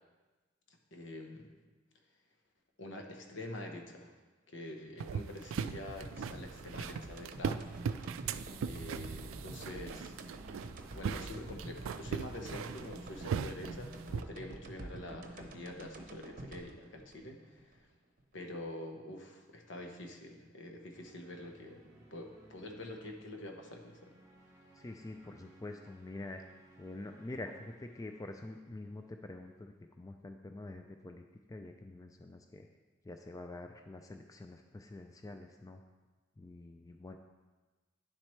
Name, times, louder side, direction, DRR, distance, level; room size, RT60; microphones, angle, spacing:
voice 1, 0.9-1.5 2.8-4.2 4.5-7.7 8.7-10.2 10.9-17.9 18.3-24.1, left 1 dB, 65° left, 3 dB, 1.0 m, -46 dB
sound 1, 5.0-14.2, right 6 dB, 85° right, 0.3 m, -40 dB
sound 2, 5.6-17.8 18.2-18.3, right 1 dB, 45° right, 0.8 m, -48 dB
sound 3, 20.9-29.8, right 2 dB, 15° right, 1.4 m, -62 dB
voice 2, 24.7-26.4 26.8-31.2 31.5-32.7 33.0-35.8 36.4-37.2, left 2 dB, 15° left, 5 dB, 0.4 m, -46 dB
9.8 x 7.4 x 3.2 m, 1.2 s
head